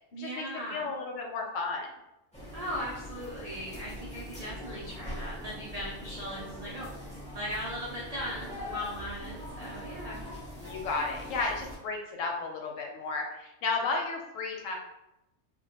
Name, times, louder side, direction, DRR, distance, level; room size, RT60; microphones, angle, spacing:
voice 1, 0.1-0.9 2.5-10.3, equal, 75° right, -6 dB, 0.3 m, -38 dB
voice 2, 0.7-1.9 10.6-14.8, left 3 dB, 90° left, 1 dB, 1.0 m, -33 dB
sound 1, 2.3-11.8, left 1 dB, 10° left, 0.4 m, -42 dB
2.1 x 2.1 x 2.8 m, 0.90 s
omnidirectional pair, 1.3 m